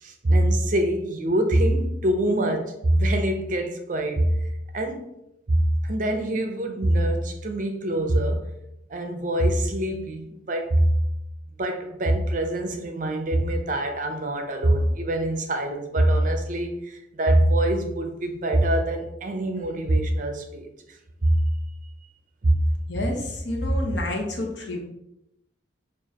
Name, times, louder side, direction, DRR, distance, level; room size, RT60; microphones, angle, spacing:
voice 1, 0.0-4.4 4.7-5.1 5.5-8.4 8.9-11.0 11.6-20.7 21.2-21.4 22.4-22.6, right 1 dB, 40° right, 5 dB, 0.5 m, -24 dB
voice 2, 22.9-24.8, left 1 dB, 70° left, 0 dB, 0.9 m, -27 dB
6.9 x 2.5 x 2.8 m, 0.85 s
head